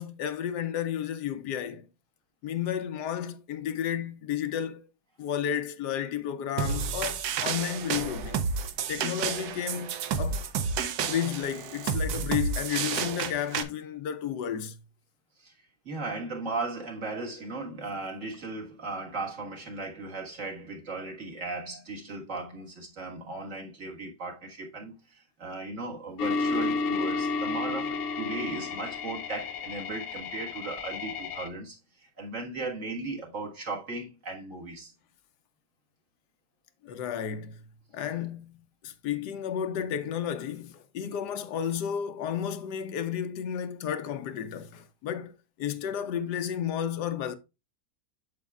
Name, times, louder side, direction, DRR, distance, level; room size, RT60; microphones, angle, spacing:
voice 1, 0.0-1.9 2.4-4.8 5.2-8.4 8.9-10.5 11.0-14.8 36.8-37.6 37.9-47.4, left 9 dB, 80° left, 1.3 m, -32 dB
sound 1, 6.6-13.6, right 6 dB, 70° right, 1.2 m, -30 dB
voice 2, 15.9-34.9, right 3 dB, 50° right, 1.9 m, -37 dB
sound 2, 26.2-31.5, left 4 dB, 60° left, 0.7 m, -31 dB
8.3 x 6.8 x 2.3 m
omnidirectional pair, 1.8 m